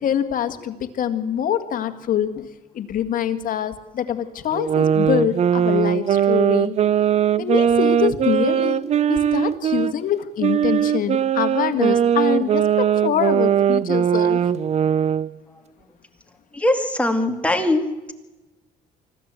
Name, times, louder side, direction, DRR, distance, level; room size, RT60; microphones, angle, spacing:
voice 1, 0.0-2.5 2.7-6.8 7.4-8.8 9.1-14.4, left 9 dB, 55° left, 9 dB, 1.8 m, -24 dB
sound 1, 4.5-9.9 10.4-15.3, right 9 dB, 40° right, 0.6 m, -20 dB
voice 2, 16.5-17.8, left 1 dB, 5° left, 5 dB, 2.5 m, -21 dB
24.5 x 15.0 x 8.3 m, 1.1 s
cardioid pair, 110°, 17 cm